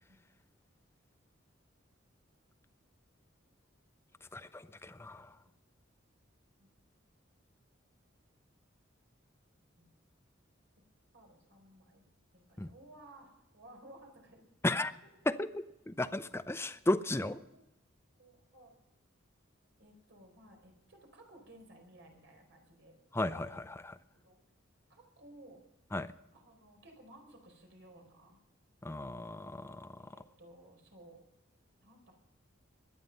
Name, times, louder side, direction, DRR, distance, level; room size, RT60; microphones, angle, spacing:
voice 1, 4.2-5.4 12.6-12.7 14.6-14.9 15.3-17.3 23.1-24.0 25.9-26.1 28.8-30.2, left 1 dB, 15° left, 13 dB, 0.5 m, -35 dB
voice 2, 11.1-12.1 12.3-14.8 17.2-17.6 18.2-18.7 19.8-23.0 23.3-23.6 24.2-24.4 24.9-25.6 26.3-28.4 30.0-31.2 31.8-32.1, right 1 dB, 65° right, 2 dB, 4.6 m, -57 dB
22.0 x 9.8 x 5.4 m, 0.91 s
head